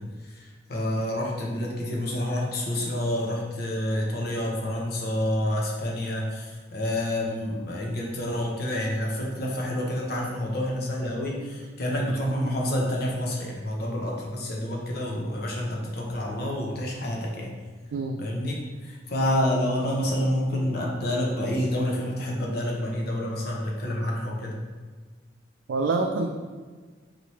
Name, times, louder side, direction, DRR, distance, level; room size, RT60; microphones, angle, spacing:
voice 1, 0.0-17.5 18.2-18.6 18.8-24.6, left 1 dB, 55° left, -2 dB, 0.8 m, -28 dB
voice 2, 25.7-26.3, right 3 dB, 85° right, 2 dB, 0.3 m, -26 dB
4.1 x 2.9 x 3.1 m, 1.5 s
head